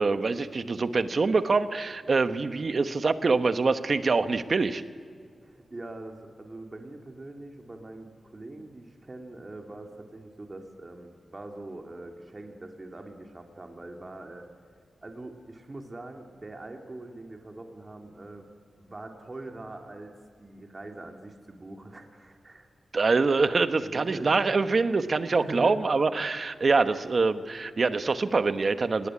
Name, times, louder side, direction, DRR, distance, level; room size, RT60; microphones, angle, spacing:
voice 1, 0.0-4.8 22.9-29.1, right 4 dB, 45° right, 11 dB, 1.1 m, -25 dB
voice 2, 5.4-14.4 15.0-18.5 18.8-20.1 20.4-22.7 23.8-24.6 25.3-25.8, right 2 dB, 30° right, 3 dB, 2.3 m, -43 dB
28.0 x 19.0 x 9.8 m, 2.1 s
wide cardioid pair, 120°, 0 cm